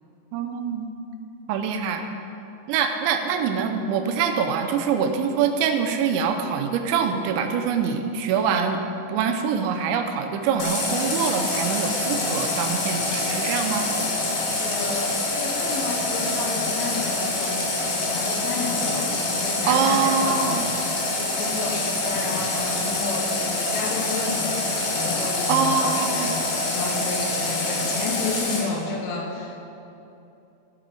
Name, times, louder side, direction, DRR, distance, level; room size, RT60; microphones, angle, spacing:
voice 1, 0.3-0.9 1.5-2.1 2.7-8.8 9.1-13.9 19.7-20.7 25.5-26.3, right 6 dB, 80° right, 6 dB, 2.9 m, -24 dB
Water tap faucet, 10.6-28.6, left 2 dB, 55° left, 2.6 m, -26 dB
voice 2, 14.6-29.6, left 4 dB, 85° left, 1 dB, 3.8 m, -31 dB
16.5 x 8.3 x 5.3 m, 2.8 s
omnidirectional pair, 5.5 m